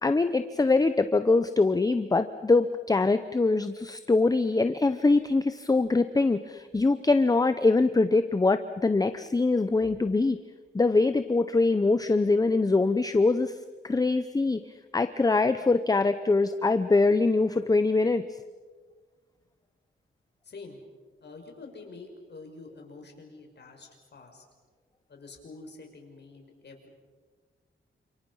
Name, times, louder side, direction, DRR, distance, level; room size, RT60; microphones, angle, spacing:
voice 1, 0.0-10.4 10.7-13.6 13.8-14.6 14.9-18.2, left 3 dB, 15° left, 11 dB, 0.7 m, -23 dB
voice 2, 20.4-20.8 21.2-24.4 25.1-26.9, left 3 dB, 55° left, 2 dB, 5.7 m, -47 dB
30.0 x 27.5 x 5.6 m, 1.4 s
wide cardioid pair, 135°, 21 cm